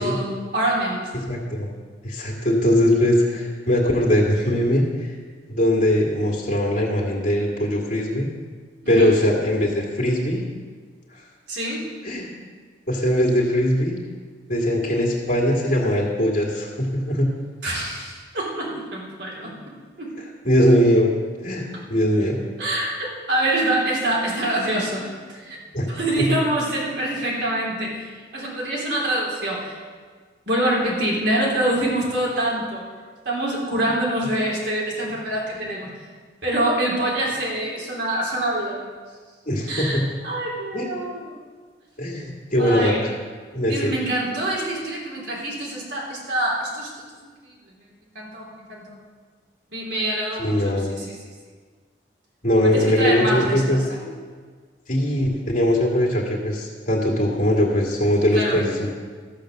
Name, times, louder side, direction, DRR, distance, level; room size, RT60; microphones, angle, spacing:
voice 1, 0.0-1.1 8.8-9.1 11.5-11.9 17.6-20.1 22.6-25.6 25.9-29.8 30.5-32.8 33.2-35.9 36.4-38.9 39.7-41.4 42.6-43.1 43.7-46.9 47.2-47.9 48.1-49.0 49.7-51.2 52.6-54.1 58.3-58.6, right 1 dB, 75° right, -4 dB, 3.4 m, -26 dB
voice 2, 1.3-1.7 2.0-5.1 5.5-8.3 8.9-10.4 11.1-11.2 12.0-12.3 12.9-14.0 14.5-17.3 20.4-21.1 21.4-22.4 25.7-25.9 35.5-35.8 39.5-40.0 40.7-40.9 42.0-43.1 43.5-43.9 50.4-50.9 52.4-53.8 54.9-58.9, equal, 50° left, -2 dB, 2.1 m, -21 dB
13.5 x 7.2 x 6.6 m, 1.6 s
head